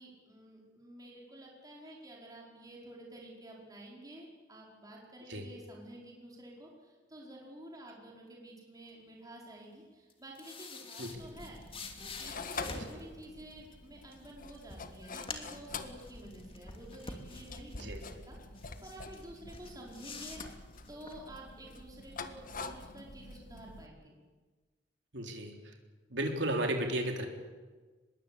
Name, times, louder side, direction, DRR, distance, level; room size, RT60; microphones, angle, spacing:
voice 1, 0.0-18.4 18.8-20.6 20.9-24.2, right 1 dB, 20° right, -3 dB, 5.1 m, -51 dB
sound 1, 10.1-13.0 14.1-14.2 14.5-15.7 16.0-18.2 18.6-19.3 19.5-21.1, left 4 dB, 30° left, 2.7 m, -46 dB
sound 2, 11.1-23.9, left 4 dB, 50° left, 1.6 m, -46 dB
voice 2, 25.1-25.5 26.1-27.3, right 1 dB, 75° right, 3 dB, 3.8 m, -33 dB
24.5 x 21.0 x 8.6 m, 1.3 s
head